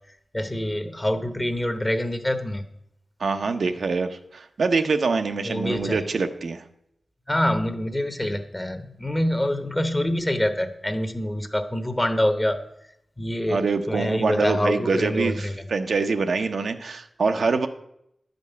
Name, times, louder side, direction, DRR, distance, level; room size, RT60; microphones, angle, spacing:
voice 1, 0.3-2.7 5.4-6.0 7.3-12.6 13.2-15.5, left 1 dB, 15° left, 9 dB, 1.0 m, -25 dB
voice 2, 3.2-6.6 13.5-17.7, right 4 dB, 75° right, 6 dB, 0.8 m, -25 dB
11.0 x 5.3 x 8.1 m, 0.77 s
wide cardioid pair, 120°, 0 cm